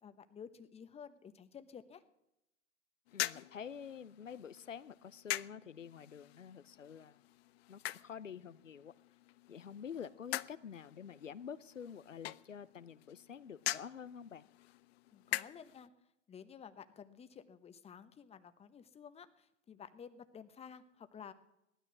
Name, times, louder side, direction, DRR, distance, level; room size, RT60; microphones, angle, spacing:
voice 1, 0.0-2.0 15.1-15.9 16.3-21.3, left 7 dB, 15° left, 11 dB, 1.1 m, -53 dB
voice 2, 3.1-7.2 7.7-8.9 9.5-14.5, left 7 dB, 90° left, 17 dB, 0.8 m, -48 dB
sound 1, 3.1-15.9, left 15 dB, 55° left, 0.6 m, -44 dB
18.0 x 12.5 x 6.1 m, 0.86 s
hypercardioid pair, 105°, 37 cm